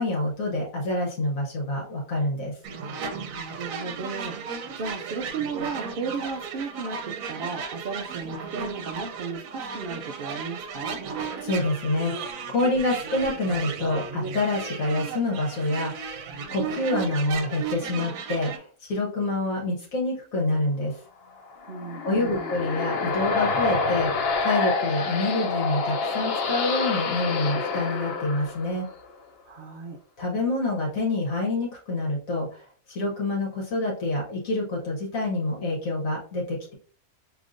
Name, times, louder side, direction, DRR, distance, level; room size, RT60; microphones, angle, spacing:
voice 1, 0.0-2.5 11.4-16.1 16.5-21.0 22.0-28.9 30.2-36.7, left 2 dB, 70° left, -2 dB, 1.3 m, -27 dB
sound 1, 2.6-18.6, right 5 dB, 70° right, 1.0 m, -35 dB
voice 2, 3.4-4.4 4.8-11.0 21.7-22.5 29.5-30.0, right 4 dB, 90° right, 3 dB, 0.4 m, -35 dB
sound 2, 21.4-29.0, left 4 dB, 55° left, 0.8 m, -27 dB
5.1 x 2.8 x 2.5 m, 0.44 s
omnidirectional pair, 1.5 m